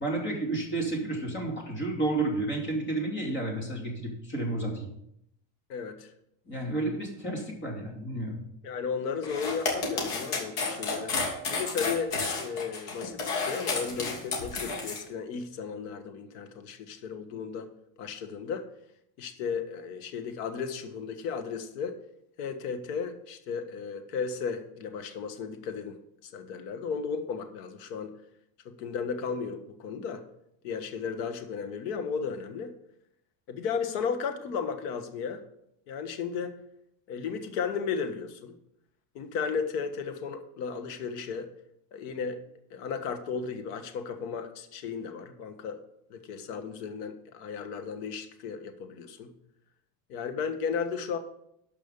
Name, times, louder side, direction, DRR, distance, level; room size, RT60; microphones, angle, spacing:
voice 1, 0.0-4.9 6.4-8.4, right 2 dB, 25° left, 0 dB, 2.8 m, -31 dB
voice 2, 5.7-6.1 8.6-17.7 18.0-18.6 19.2-22.0 22.4-28.2 28.6-30.2 30.6-32.7 33.5-35.4 35.9-36.5 37.1-38.5 39.1-41.5 41.9-42.4 42.7-45.8 46.1-49.3 50.1-51.2, left 6 dB, 85° left, 8 dB, 1.6 m, -34 dB
sound 1, 9.2-15.0, left 4 dB, 60° left, 3.1 m, -31 dB
12.5 x 5.6 x 5.3 m, 0.76 s
cardioid pair, 165°, 46 cm